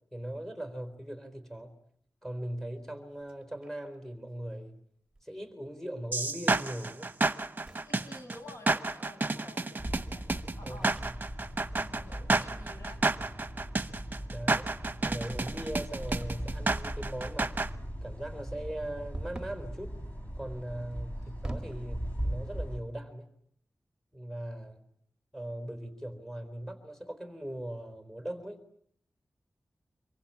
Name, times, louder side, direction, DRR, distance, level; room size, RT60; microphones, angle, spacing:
voice 1, 0.1-1.8 2.2-4.8 5.2-7.1 10.6-10.9 14.3-14.7 15.1-17.6 18.0-19.9 20.4-23.3 24.1-24.8 25.3-28.6, right 1 dB, 5° left, 8 dB, 4.1 m, -39 dB
sound 1, 3.2-4.0 5.1-5.5 7.5-9.2 10.6-12.0 12.3-12.6 15.1-15.7 16.1-16.7 19.1-19.7 20.9-21.9, right 2 dB, 15° right, 1.7 m, -45 dB
sound 2, 6.1-17.7, right 3 dB, 30° right, 1.2 m, -30 dB
voice 2, 7.7-10.3 10.5-11.0 11.7-13.1 21.1-21.3, left 2 dB, 65° left, 5 dB, 6.2 m, -50 dB
sound 3, 9.8-22.8, equal, 30° left, 6.0 m, -39 dB
26.0 x 23.5 x 8.8 m, 0.68 s
wide cardioid pair, 85°, 6 cm